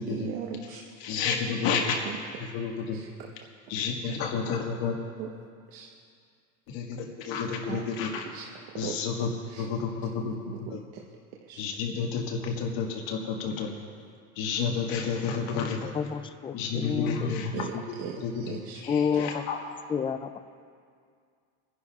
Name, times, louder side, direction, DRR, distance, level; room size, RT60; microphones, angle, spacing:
voice 1, 0.1-0.8 2.0-2.2 2.4-2.5 2.9-3.3 4.5-4.6 5.2-5.3 5.7-5.9 7.7-7.9 8.3-9.6 10.1-11.0 11.4-11.6 17.5-18.8, right 8 dB, 75° right, -1 dB, 1.1 m, -39 dB
voice 2, 1.0-1.9 2.4-3.0 3.7-4.9 6.7-8.2 8.8-10.4 10.7-10.8 11.6-13.7 14.3-15.9 16.5-17.6 18.2-18.3 18.8-19.6, left 6 dB, 75° left, 0 dB, 1.8 m, -30 dB
voice 3, 15.9-17.5 18.9-19.4 19.9-20.4, left 6 dB, 15° left, 11 dB, 0.3 m, -29 dB
26.5 x 11.0 x 2.4 m, 2.2 s
cardioid pair, 130°, 35 cm